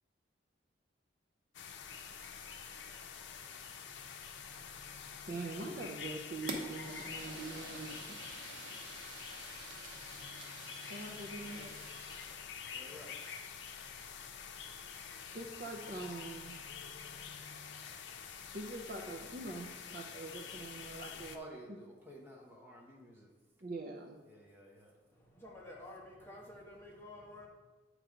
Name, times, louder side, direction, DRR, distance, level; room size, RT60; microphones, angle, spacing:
sound 1, 1.5-21.4, left 6 dB, 80° left, 0.6 m, -47 dB
voice 1, 5.2-8.0 10.9-11.7 15.3-16.5 18.5-21.6 23.6-24.2, right 2 dB, 50° right, 2 dB, 0.5 m, -44 dB
Fire, 6.5-12.4, right 3 dB, 85° right, 0.9 m, -48 dB
voice 2, 12.6-13.3 21.0-23.3 24.2-25.0, equal, 10° right, -2 dB, 1.1 m, -53 dB
voice 3, 25.1-27.5, left 1 dB, 10° left, -4 dB, 1.3 m, -51 dB
8.8 x 3.3 x 5.0 m, 1.3 s
head